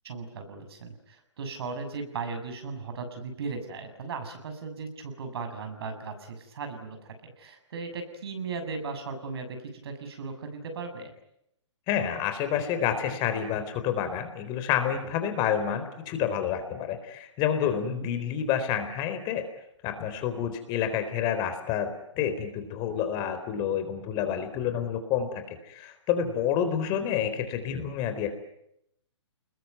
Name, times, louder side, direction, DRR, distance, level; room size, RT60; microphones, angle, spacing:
voice 1, 0.0-9.6 9.8-11.1 17.8-18.1, right 4 dB, 55° right, 7 dB, 7.2 m, -37 dB
voice 2, 11.9-19.5 19.8-28.3, left 9 dB, 30° left, 8 dB, 4.2 m, -29 dB
28.5 x 21.5 x 9.4 m, 0.79 s
hypercardioid pair, 135°, 15 cm